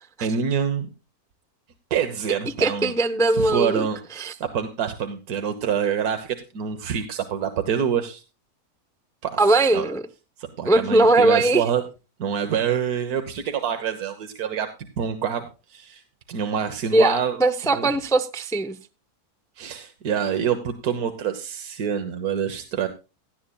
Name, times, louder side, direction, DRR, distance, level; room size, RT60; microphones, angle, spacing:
voice 1, 0.2-0.9 1.9-2.9 3.3-8.2 9.2-9.4 9.7-9.8 10.6-11.8 12.2-14.7 15.0-16.0 16.3-17.4 17.7-17.9 19.6-22.9, right 8 dB, 85° right, 1.6 m, -26 dB
voice 2, 2.6-3.9 4.2-4.3 9.4-10.0 10.6-11.6 16.9-18.8, right 2 dB, 5° left, 0.3 m, -20 dB
17.5 x 12.5 x 2.3 m
omnidirectional pair, 1.6 m